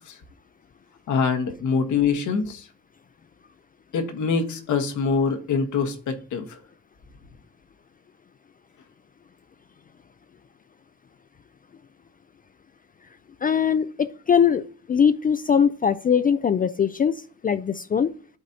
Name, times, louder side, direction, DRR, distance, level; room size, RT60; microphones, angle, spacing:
voice 1, 1.1-2.7 3.9-6.6, left 5 dB, 75° left, 1.3 m, -24 dB
voice 2, 13.4-18.1, left 7 dB, 30° left, 0.4 m, -21 dB
11.5 x 4.1 x 2.8 m
cardioid pair, 90°, 30 cm